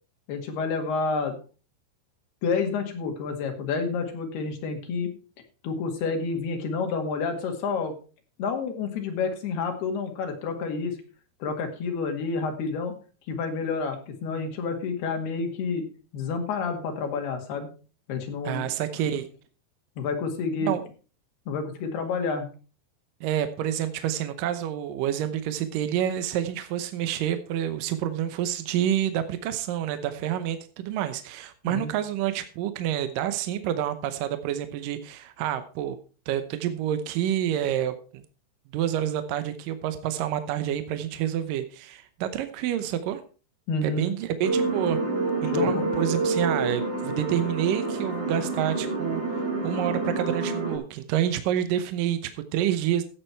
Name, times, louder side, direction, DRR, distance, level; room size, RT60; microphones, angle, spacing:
voice 1, 0.3-1.4 2.4-5.1 5.6-7.9 8.4-11.0 11.4-12.9 13.3-15.8 16.1-17.7 18.1-18.7 20.0-20.7 21.5-22.5 31.7-31.9 43.7-44.1 45.5-45.8, left 4 dB, 70° left, 4 dB, 3.9 m, -29 dB
voice 2, 18.4-19.3 20.6-20.8 23.2-36.0 36.3-38.2 38.7-43.2 43.8-45.0 45.4-53.0, right 11 dB, 75° right, 10 dB, 2.0 m, -28 dB
sound 1, 44.4-50.8, right 3 dB, 30° right, 3.1 m, -28 dB
15.0 x 7.9 x 4.5 m, 0.36 s
omnidirectional pair, 5.0 m